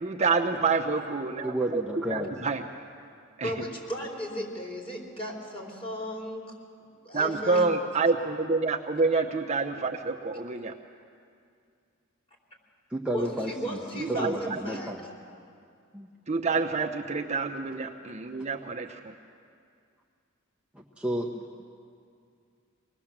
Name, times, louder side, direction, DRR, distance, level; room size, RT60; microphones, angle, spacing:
voice 1, 0.0-1.8 2.1-2.6 3.4-3.5 7.1-10.7 14.1-14.4 16.3-19.1, right 4 dB, 30° right, 2 dB, 0.8 m, -27 dB
voice 2, 1.4-2.3 12.9-13.8 14.1-15.0 15.9-16.1 20.7-21.6, right 1 dB, 5° right, -2 dB, 1.0 m, -32 dB
voice 3, 3.4-6.5 7.0-7.7 13.1-15.0, equal, 25° left, -1 dB, 4.3 m, -35 dB
25.0 x 19.5 x 7.4 m, 2.4 s
head